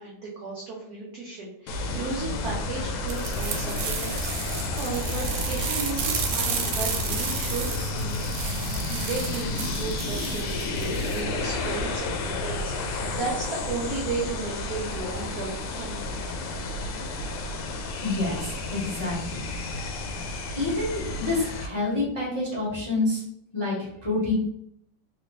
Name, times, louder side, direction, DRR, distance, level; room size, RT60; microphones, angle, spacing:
voice 1, 0.0-7.7 7.9-8.2 8.9-16.0, right 4 dB, 75° right, -4 dB, 0.8 m, -34 dB
sound 1, 1.7-21.7, left 2 dB, 80° left, 1.4 m, -31 dB
sound 2, 3.1-11.2, right 7 dB, 90° right, 1.5 m, -33 dB
voice 2, 18.0-19.4 20.6-23.2 23.5-24.3, left 2 dB, 35° left, -6 dB, 0.5 m, -28 dB
3.3 x 2.9 x 3.1 m, 0.74 s
omnidirectional pair, 2.4 m